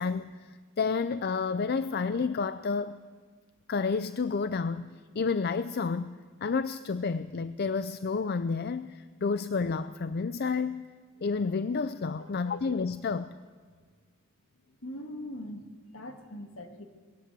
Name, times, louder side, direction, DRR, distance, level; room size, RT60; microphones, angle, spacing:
voice 1, 0.0-3.0 3.7-10.9 11.2-13.3, left 4 dB, 50° left, 13 dB, 0.5 m, -30 dB
voice 2, 12.1-12.6 14.8-16.8, left 1 dB, 70° left, 5 dB, 2.1 m, -42 dB
20.0 x 18.0 x 7.6 m, 1.6 s
head